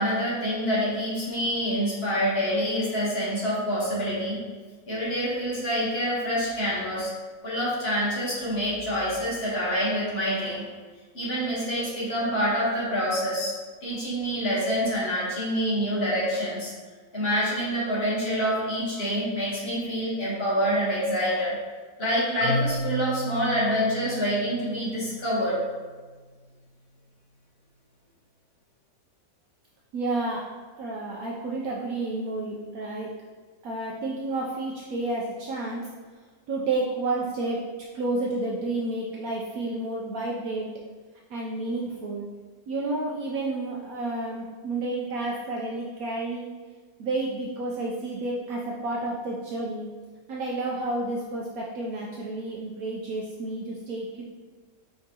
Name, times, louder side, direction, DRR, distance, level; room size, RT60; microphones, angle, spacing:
voice 1, 0.0-4.4 4.9-7.1 7.4-10.6 11.1-13.5 13.8-16.7 17.1-21.5 22.0-25.6, equal, 40° left, -7 dB, 1.3 m, -26 dB
Marimba xylophone, 22.4-26.3, equal, 65° left, 1.2 m, -33 dB
voice 2, 29.9-30.5 30.8-33.1 33.6-35.9 36.5-37.7 37.9-40.7 41.3-42.3 42.7-46.5 47.0-49.9 50.3-54.2, right 2 dB, 70° right, -3 dB, 0.9 m, -30 dB
4.8 x 3.4 x 2.8 m, 1.4 s
omnidirectional pair, 1.8 m